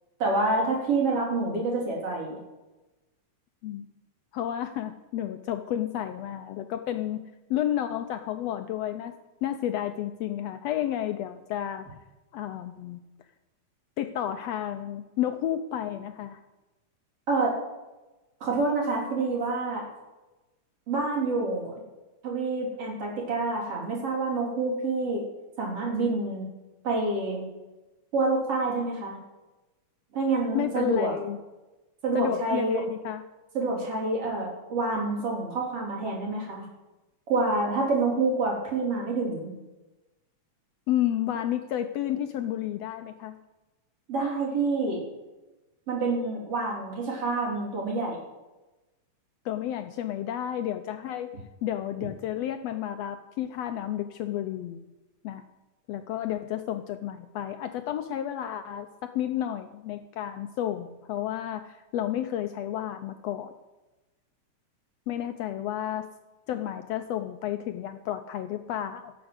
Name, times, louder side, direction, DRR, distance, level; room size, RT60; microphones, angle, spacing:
voice 1, 0.2-2.4 17.3-17.5 18.4-19.8 20.9-21.7 22.2-25.2 25.6-26.5 26.8-27.4 28.1-29.2 30.1-31.1 32.0-32.8 33.5-36.6 37.3-39.5 44.1-45.0 45.9-48.2, right 3 dB, 50° right, -3 dB, 4.8 m, -27 dB
voice 2, 4.3-7.2 7.5-9.2 9.4-11.9 12.3-13.0 14.0-16.4 30.5-31.4 32.1-33.2 40.9-43.4 49.4-51.3 51.6-54.8 55.2-55.4 55.9-63.5 65.1-66.1 66.5-69.1, left 11 dB, 75° left, 8 dB, 1.6 m, -31 dB
16.0 x 7.2 x 7.9 m, 1.1 s
omnidirectional pair, 3.3 m